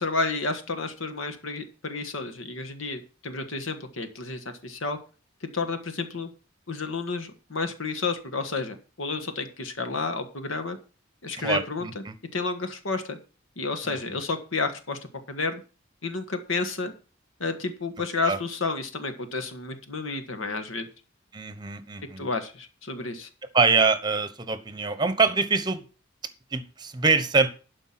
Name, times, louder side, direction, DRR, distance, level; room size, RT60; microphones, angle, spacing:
voice 1, 0.0-5.0 5.4-6.3 6.7-10.8 11.2-12.0 12.3-13.2 13.6-15.0 15.3-15.6 16.0-16.9 17.4-20.9 22.2-23.3, left 3 dB, 75° left, 8 dB, 1.5 m, -31 dB
voice 2, 11.4-12.1 13.8-14.2 18.3-18.4 21.3-22.3 23.5-25.8 26.5-27.5, right 4 dB, 20° right, 11 dB, 1.0 m, -24 dB
11.5 x 5.2 x 5.9 m, 0.35 s
head